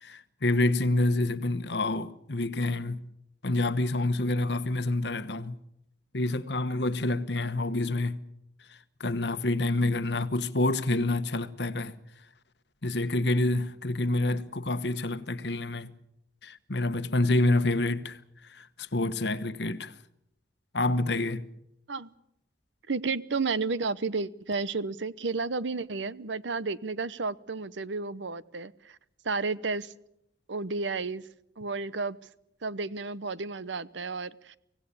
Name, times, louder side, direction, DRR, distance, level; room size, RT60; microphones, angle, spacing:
voice 1, 0.0-3.0 3.4-5.6 6.1-8.2 9.0-11.9 12.8-15.9 16.4-18.2 18.5-19.9 20.7-21.4, left 2 dB, 65° left, 1.2 m, -27 dB
voice 2, 22.9-29.0 29.2-29.9 30.5-31.3 31.6-32.2 32.6-34.6, right 4 dB, 80° right, 0.9 m, -32 dB
25.0 x 17.5 x 8.4 m
head